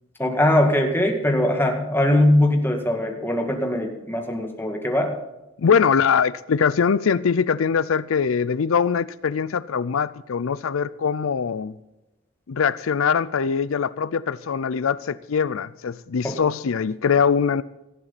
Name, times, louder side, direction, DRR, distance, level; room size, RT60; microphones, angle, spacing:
voice 1, 0.2-5.2 16.2-16.4, left 1 dB, 10° left, 2.0 m, -21 dB
voice 2, 5.6-11.7 12.5-17.6, left 6 dB, 80° left, 0.5 m, -22 dB
18.0 x 13.5 x 4.2 m
head